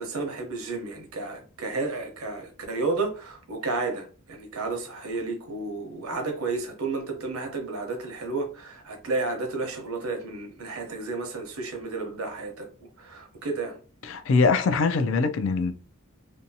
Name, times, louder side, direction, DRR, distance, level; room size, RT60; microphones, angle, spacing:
voice 1, 0.0-12.7 13.0-13.8, right 3 dB, 85° right, 0.7 m, -32 dB
voice 2, 14.0-15.7, left 4 dB, 65° left, 0.4 m, -22 dB
2.7 x 2.2 x 2.6 m
head